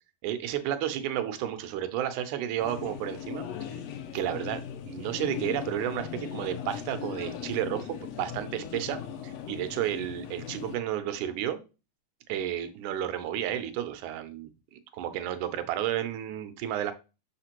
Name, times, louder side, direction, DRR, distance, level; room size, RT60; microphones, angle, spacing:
voice 1, 0.2-3.4 3.7-3.8 4.1-4.6 4.9-11.6 12.3-16.9, right 11 dB, 75° right, 10 dB, 2.0 m, -32 dB
sound 1, 2.6-10.8, left 9 dB, 85° left, 1.4 m, -38 dB
6.5 x 5.0 x 2.9 m, 0.31 s
omnidirectional pair, 3.8 m